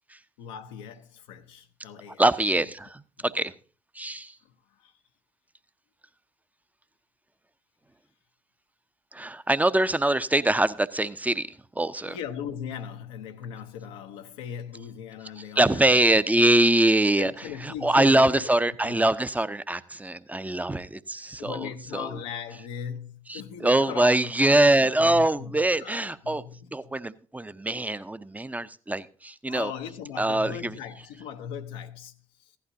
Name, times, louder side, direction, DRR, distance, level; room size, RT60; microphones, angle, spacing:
voice 1, 0.4-2.7 4.8-4.9 12.1-15.9 16.1-16.5 17.2-18.5 18.8-19.1 21.4-27.0 29.5-32.5, left 8 dB, 75° left, 0.8 m, -39 dB
voice 2, 2.2-3.5 3.9-4.4 9.1-12.2 15.6-22.1 23.3-26.4 26.7-29.7 30.2-30.8, right 1 dB, 10° right, 0.6 m, -23 dB
15.5 x 11.5 x 2.7 m
figure-of-eight pair, 45°, 16 cm